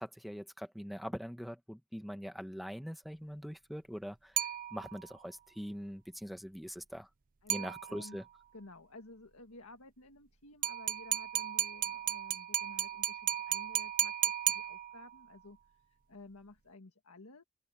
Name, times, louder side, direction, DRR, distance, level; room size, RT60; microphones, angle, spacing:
voice 1, 0.0-4.3 4.7-7.1 7.5-8.2, equal, ahead, 1.3 m, -43 dB
sound 1, 4.4-5.2 7.5-8.2 10.6-15.2, right 12 dB, 40° right, 0.5 m, -35 dB
voice 2, 7.4-8.2 8.5-14.1 14.5-17.4, left 2 dB, 70° left, 1.8 m, -54 dB
open air
head